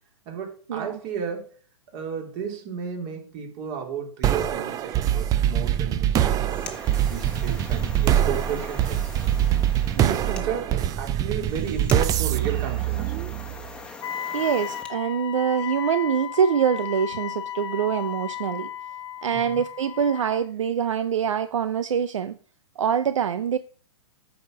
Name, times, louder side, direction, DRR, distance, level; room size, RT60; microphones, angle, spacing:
voice 1, 0.3-1.5 1.9-6.7 7.1-9.3 9.8-13.1 19.3-19.6, right 7 dB, 40° right, 2.9 m, -33 dB
sound 1, 4.2-13.7, right 11 dB, 20° right, 0.5 m, -24 dB
sound 2, 6.3-15.0, left 4 dB, 5° left, 1.2 m, -43 dB
Wind instrument woodwind instrument, 14.0-20.4, left 10 dB, 65° left, 0.7 m, -34 dB
voice 2, 14.3-18.7 19.2-22.4 22.8-23.6, right 7 dB, 80° right, 0.6 m, -24 dB
9.0 x 4.9 x 6.1 m
hypercardioid pair, 120°, 16 cm